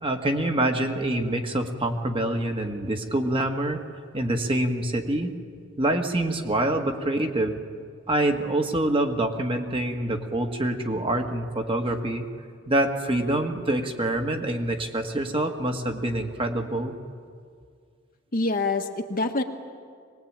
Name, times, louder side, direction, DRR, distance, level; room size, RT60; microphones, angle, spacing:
voice 1, 0.0-3.8 4.1-5.3 5.8-7.6 8.1-12.3 12.7-16.9, right 1 dB, 25° right, 4 dB, 1.7 m, -26 dB
voice 2, 18.3-19.4, left 3 dB, 45° left, 5 dB, 1.5 m, -25 dB
23.0 x 20.0 x 8.9 m, 2.1 s
head